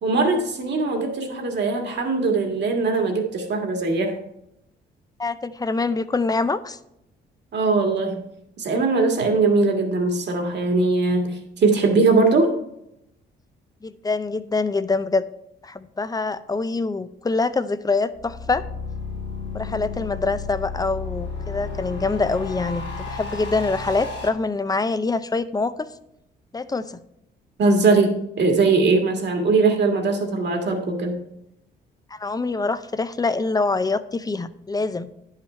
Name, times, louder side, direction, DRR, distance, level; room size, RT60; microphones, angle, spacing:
voice 1, 0.0-4.2 7.5-8.3 8.6-12.5 27.6-31.2, right 3 dB, 60° right, 3 dB, 1.9 m, -20 dB
voice 2, 5.2-6.8 13.8-15.2 15.6-18.6 19.5-25.9 26.5-27.0 32.1-35.1, left 3 dB, 20° left, 13 dB, 0.5 m, -25 dB
sound 1, 18.2-24.3, left 4 dB, 60° left, 2.0 m, -32 dB
10.0 x 5.7 x 4.4 m, 0.83 s
cardioid pair, 90°, 20 cm